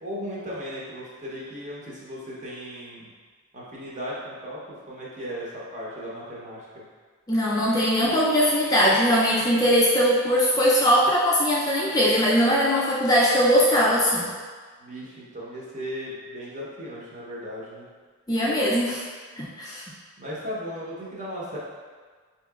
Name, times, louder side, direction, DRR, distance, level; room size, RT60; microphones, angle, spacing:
voice 1, 0.0-3.1 3.5-4.6 4.9-6.8 14.8-17.9 20.2-21.6, equal, 35° right, -6 dB, 0.9 m, -36 dB
voice 2, 7.3-14.3 18.3-19.0 19.4-19.8, equal, 20° left, -5 dB, 0.3 m, -20 dB
5.1 x 2.8 x 2.3 m, 1.5 s
head